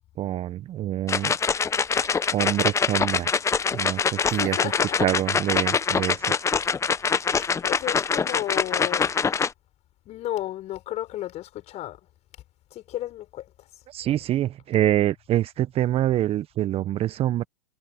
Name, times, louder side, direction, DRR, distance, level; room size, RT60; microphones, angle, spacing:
voice 1, 0.2-1.3 2.3-3.4 3.7-4.6 5.0-6.3 13.9-17.4, right 13 dB, 30° right, 1.3 m, -25 dB
sound 1, 1.1-9.5, left 6 dB, 15° left, 1.2 m, -24 dB
voice 2, 4.3-5.0 7.6-9.1 10.1-12.0 12.7-13.5, left 14 dB, 35° left, 5.6 m, -33 dB
hypercardioid pair, 105°, 20 cm